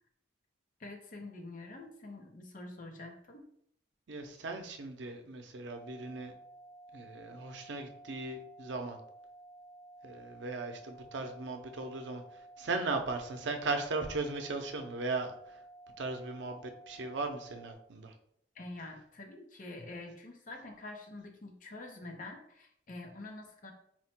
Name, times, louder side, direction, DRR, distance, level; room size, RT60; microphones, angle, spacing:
voice 1, 0.8-3.5 18.5-23.7, left 2 dB, 45° left, 3 dB, 0.7 m, -46 dB
voice 2, 4.1-6.3 6.9-9.0 10.0-15.6 16.0-18.1, right 3 dB, 90° right, 5 dB, 0.6 m, -37 dB
sound 1, 5.7-17.7, right 2 dB, 65° left, 1.3 m, -54 dB
4.3 x 2.1 x 4.3 m, 0.70 s
head